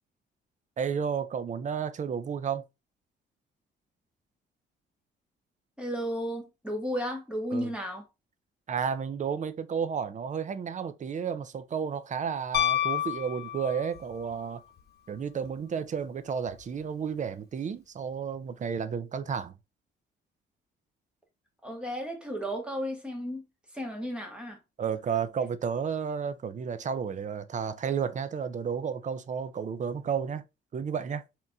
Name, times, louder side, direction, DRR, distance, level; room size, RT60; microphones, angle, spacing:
voice 1, 0.8-2.6 7.5-7.7 8.7-14.6 15.1-19.5 24.8-30.4 30.7-31.2, right 7 dB, 40° right, 0.5 m, -32 dB
voice 2, 5.8-8.0 21.6-23.4 23.7-24.6, equal, 5° right, 1.6 m, -33 dB
Piano, 12.5-14.1 16.5-16.6, left 11 dB, 55° left, 0.9 m, -29 dB
3.8 x 2.9 x 3.4 m
cardioid pair, 90°, 20 cm